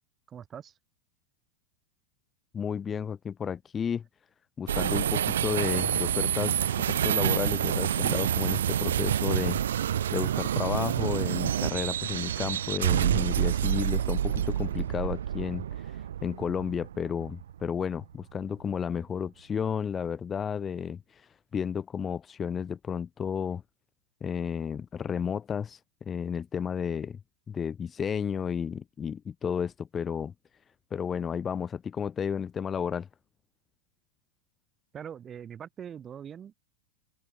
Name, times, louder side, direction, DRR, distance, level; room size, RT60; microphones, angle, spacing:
voice 1, 0.3-0.8 34.9-36.5, right 8 dB, 25° right, 3.4 m, -42 dB
voice 2, 2.5-4.0 4.6-15.6 16.2-21.0 21.5-23.6 24.2-27.2 27.5-30.3 30.9-33.1, left 7 dB, 20° left, 2.4 m, -32 dB
sound 1, 4.7-18.0, right 10 dB, 65° right, 0.6 m, -28 dB
open air
figure-of-eight pair, 90°, 0 cm